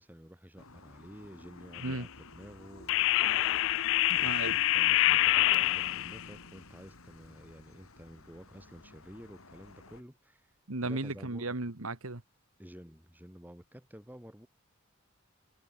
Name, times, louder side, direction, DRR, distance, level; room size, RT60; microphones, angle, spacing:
voice 1, 0.0-3.8 4.1-10.5 10.8-11.5 12.6-14.5, equal, 10° right, 4.5 m, -51 dB
sound 1, 0.6-10.0, left 2 dB, 80° left, 4.0 m, -51 dB
sound 2, 1.7-2.0 2.9-6.2, left 16 dB, 65° left, 0.3 m, -26 dB
voice 2, 4.1-4.6 10.7-12.2, right 2 dB, 80° right, 2.0 m, -35 dB
head